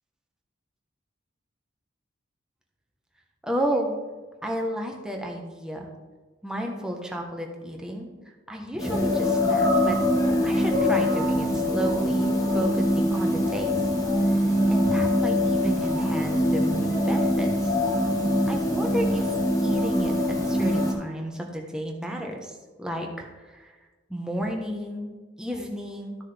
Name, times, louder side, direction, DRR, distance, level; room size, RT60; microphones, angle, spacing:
voice 1, 3.4-4.0 4.4-5.9 6.4-8.1 8.5-10.0 10.4-13.7 14.3-17.7 18.5-19.3 19.6-23.7 24.1-25.1 25.4-26.2, right 1 dB, 5° right, 0 dB, 1.2 m, -32 dB
sound 1, 8.8-20.9, left 1 dB, 20° left, 1.7 m, -23 dB
13.0 x 6.4 x 3.5 m, 1.3 s
head